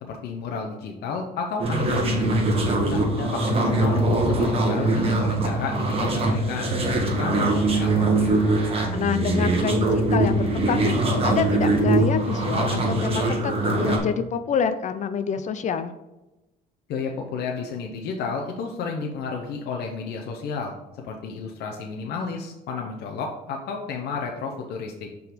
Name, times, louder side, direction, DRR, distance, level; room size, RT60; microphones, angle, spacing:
voice 1, 0.0-2.4 2.9-8.4 16.9-25.1, left 5 dB, 70° left, 1 dB, 0.7 m, -32 dB
sound 1, 1.6-14.0, right 2 dB, 35° right, 1.3 m, -22 dB
voice 2, 8.9-15.9, left 7 dB, 45° left, 11 dB, 0.4 m, -27 dB
5.6 x 3.9 x 5.1 m, 1.0 s
cardioid pair, 110°, 17 cm